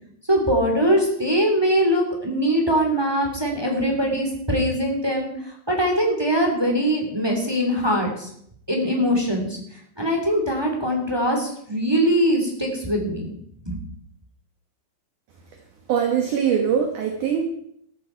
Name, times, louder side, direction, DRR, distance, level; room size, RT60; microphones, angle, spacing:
voice 1, 0.3-8.3 8.7-9.6 10.0-13.3 13.6-13.8, equal, 10° right, 0 dB, 2.1 m, -22 dB
voice 2, 15.9-17.4, right 7 dB, 60° right, 3 dB, 2.4 m, -22 dB
14.0 x 13.5 x 4.6 m, 0.69 s
omnidirectional pair, 5.0 m